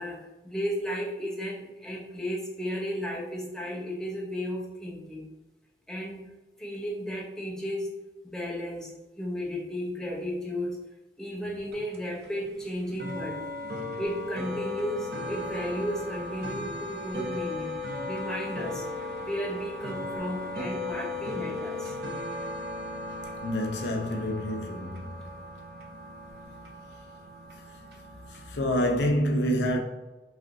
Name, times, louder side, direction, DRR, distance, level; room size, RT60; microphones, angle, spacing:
voice 1, 0.0-5.3 5.9-6.3 6.6-7.9 8.2-10.8 11.2-13.5 14.0-17.8 18.1-18.9 19.2-22.0, equal, 5° left, 0.6 m, -34 dB
sound 1, 11.6-28.8, left 2 dB, 60° right, 0.6 m, -37 dB
voice 2, 23.4-25.2 28.3-29.8, equal, 80° left, 0.7 m, -27 dB
5.7 x 2.7 x 2.6 m
head